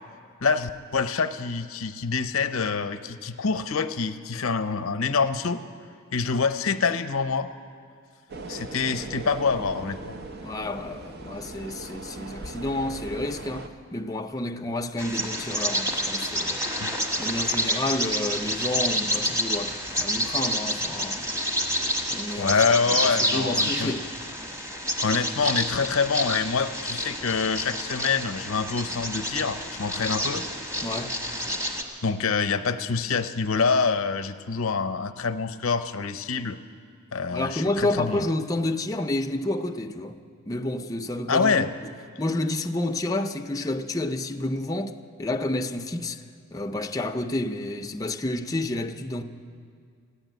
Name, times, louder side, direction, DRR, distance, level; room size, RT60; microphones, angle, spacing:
voice 1, 0.4-5.6 6.1-7.5 8.5-10.1 16.8-16.9 22.4-23.9 25.0-30.5 32.0-36.6 37.1-38.2 41.3-41.7, left 5 dB, 85° left, 0.7 m, -26 dB
sound 1, 8.3-13.7, right 2 dB, 55° right, 0.8 m, -39 dB
voice 2, 10.4-16.6 17.2-21.3 22.1-22.5 22.9-24.1 30.8-31.2 37.3-40.2 40.5-41.7 42.2-46.2 46.5-49.2, left 1 dB, 15° left, 0.5 m, -30 dB
Bird vocalization bird call bird song, 15.0-31.8, equal, 15° right, 1.4 m, -29 dB
15.0 x 9.9 x 9.2 m
head